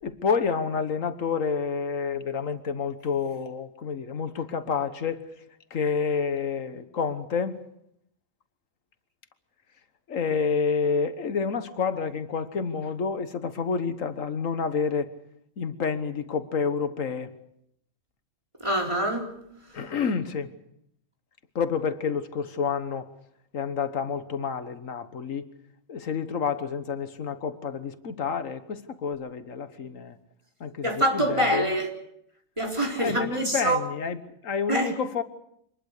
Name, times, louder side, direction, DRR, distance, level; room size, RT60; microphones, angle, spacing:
voice 1, 0.0-5.2 5.7-7.6 10.1-15.1 15.6-17.3 19.7-20.5 21.5-23.1 23.5-25.5 25.9-30.2 30.6-31.8 33.0-35.2, left 5 dB, 80° left, 10 dB, 1.6 m, -29 dB
voice 2, 18.6-19.3 30.8-31.9 32.6-33.8 34.7-34.9, right 1 dB, 20° right, 0 dB, 4.2 m, -25 dB
25.5 x 20.5 x 6.6 m, 0.73 s
omnidirectional pair, 1.3 m